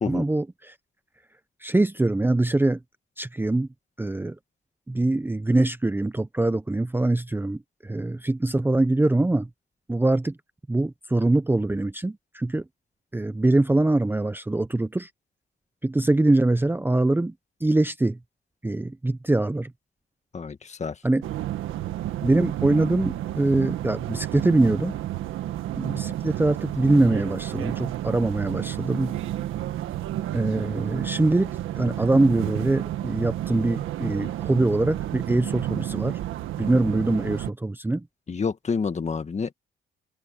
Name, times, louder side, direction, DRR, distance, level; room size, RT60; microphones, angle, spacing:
voice 1, 0.1-0.7 1.6-2.8 3.2-3.7 4.0-4.3 4.9-9.5 9.9-10.3 10.7-12.6 13.1-15.1 15.8-17.3 17.6-18.2 18.6-19.7 21.0-21.2 22.2-25.0 25.7-29.1 30.3-36.2 36.6-38.0, right 2 dB, 10° right, 0.8 m, -23 dB
voice 2, 20.3-21.0 38.3-39.5, left 5 dB, 35° left, 1.7 m, -28 dB
sound 1, 21.2-37.5, right 13 dB, 85° right, 1.7 m, -31 dB
open air
cardioid pair, 90°, 20 cm